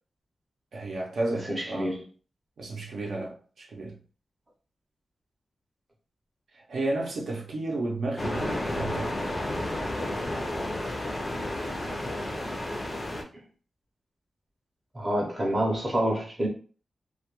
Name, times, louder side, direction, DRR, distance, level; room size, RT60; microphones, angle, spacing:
voice 1, 0.7-1.9 2.6-4.0 6.5-9.3, right 2 dB, 65° right, 0.5 m, -32 dB
voice 2, 1.5-2.0 11.3-11.5 13.3-13.4 14.9-16.5, right 1 dB, 20° right, 0.6 m, -28 dB
sound 1, 8.2-13.2, left 1 dB, 25° left, 0.4 m, -31 dB
2.2 x 2.1 x 2.9 m
wide cardioid pair, 170°, 0 cm